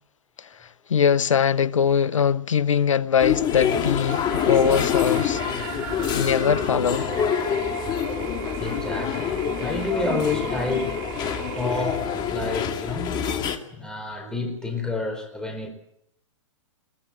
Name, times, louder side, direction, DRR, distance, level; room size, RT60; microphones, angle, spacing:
voice 1, 0.4-5.4 6.1-7.1, left 7 dB, 85° left, 0.8 m, -22 dB
sound 1, 3.2-13.6, left 8 dB, 25° left, 2.2 m, -26 dB
sound 2, 4.0-12.4, right 7 dB, 50° right, 3.6 m, -37 dB
voice 2, 8.6-10.9 11.5-12.0 12.3-13.2 13.7-15.7, left 3 dB, 5° left, 4.6 m, -29 dB
22.5 x 19.0 x 7.7 m
hypercardioid pair, 125°, 16 cm